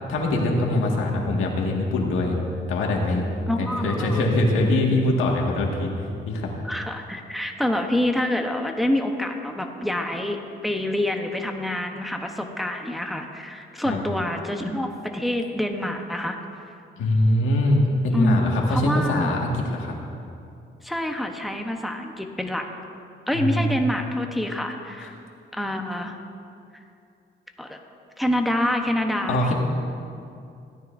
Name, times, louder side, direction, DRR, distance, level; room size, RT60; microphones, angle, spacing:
voice 1, 0.1-2.4 2.7-3.2 3.6-5.9 6.3-6.5 13.8-14.0 17.0-20.0 23.3-23.9 25.0-25.1 29.3-29.5, left 1 dB, 85° left, -1 dB, 1.9 m, -23 dB
voice 2, 3.5-4.2 6.6-16.4 18.1-19.3 20.8-22.7 23.3-25.2 25.5-26.2 27.6-27.8 28.2-29.5, left 1 dB, ahead, 3 dB, 1.0 m, -27 dB
17.0 x 12.5 x 2.7 m, 2.5 s
cardioid pair, 90°, 20 cm